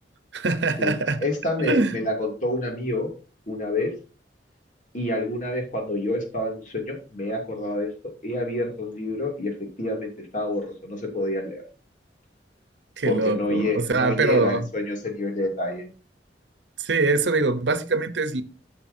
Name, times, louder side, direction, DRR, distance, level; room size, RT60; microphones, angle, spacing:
voice 1, 0.3-1.3 1.6-2.0 13.0-14.7 16.8-18.4, right 3 dB, 80° right, 0.9 m, -23 dB
voice 2, 1.2-3.1 3.5-3.9 4.9-11.6 13.0-15.9, left 1 dB, 45° left, 2.7 m, -28 dB
11.5 x 6.9 x 2.8 m
head